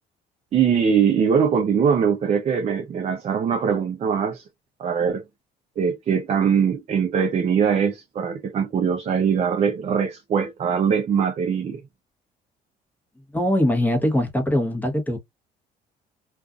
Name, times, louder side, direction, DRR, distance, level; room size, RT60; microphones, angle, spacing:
voice 1, 0.5-4.4 4.8-5.2 5.8-11.8, right 7 dB, 40° right, 0.5 m, -22 dB
voice 2, 13.3-15.2, left 1 dB, 10° left, 0.9 m, -22 dB
2.4 x 2.4 x 2.3 m
cardioid pair, 110°, 17 cm